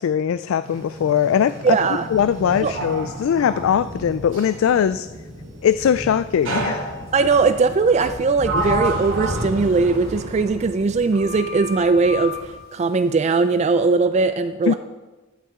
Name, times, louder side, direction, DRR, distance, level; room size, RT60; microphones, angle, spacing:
voice 1, 0.0-1.8 2.1-5.1 5.6-7.0 8.6-8.7 14.7-14.8, left 8 dB, 75° left, 14 dB, 0.3 m, -20 dB
Sliding door, 0.6-4.6 6.4-7.3 8.0-10.9 11.1-12.4, right 1 dB, 90° right, 3.9 m, -30 dB
voice 2, 1.6-2.1 2.6-2.8 7.1-14.7, right 4 dB, 35° right, 10 dB, 0.3 m, -19 dB
sound 1, 2.1-12.6, equal, 60° right, 2.8 m, -35 dB
15.0 x 8.5 x 3.6 m, 1.2 s
head